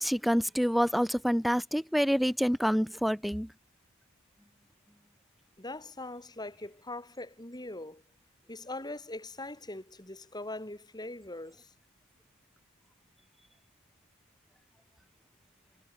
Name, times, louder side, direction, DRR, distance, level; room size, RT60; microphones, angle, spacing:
voice 1, 0.0-3.5, equal, ahead, 4.1 m, -27 dB
voice 2, 5.6-8.0 8.5-11.7, left 2 dB, 20° left, 5.0 m, -41 dB
head